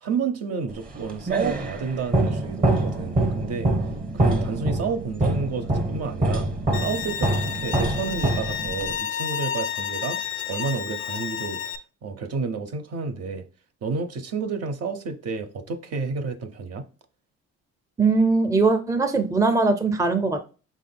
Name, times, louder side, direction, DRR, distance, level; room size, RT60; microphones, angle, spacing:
voice 1, 0.0-3.7 4.1-6.5 6.8-10.2 10.5-11.6 12.0-13.4 13.8-16.9, right 5 dB, 55° right, 0.7 m, -30 dB
sound 1, 0.9-9.0, right 2 dB, 30° right, 1.1 m, -25 dB
Bowed string instrument, 6.7-11.8, left 8 dB, 45° left, 0.4 m, -31 dB
voice 2, 18.0-20.5, right 3 dB, 10° right, 0.5 m, -21 dB
5.3 x 3.6 x 2.2 m
cardioid pair, 90°, 30 cm